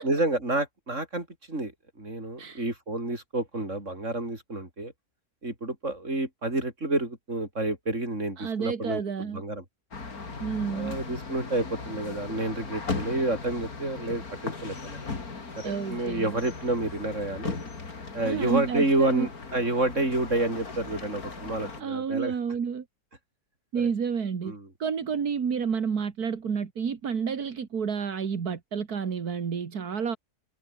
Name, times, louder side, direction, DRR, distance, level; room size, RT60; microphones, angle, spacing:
voice 1, 0.0-1.7 2.0-4.9 5.4-9.6 10.7-15.0 15.6-17.7 18.1-22.3 23.8-23.9 24.4-24.7, right 2 dB, 50° right, 6.3 m, -29 dB
voice 2, 8.4-9.4 10.4-11.0 15.6-16.4 18.2-19.3 21.8-22.8 23.7-24.5 24.8-30.2, right 6 dB, 75° right, 2.3 m, -30 dB
sound 1, 9.9-21.8, left 4 dB, 70° left, 3.5 m, -38 dB
omnidirectional pair, 1.6 m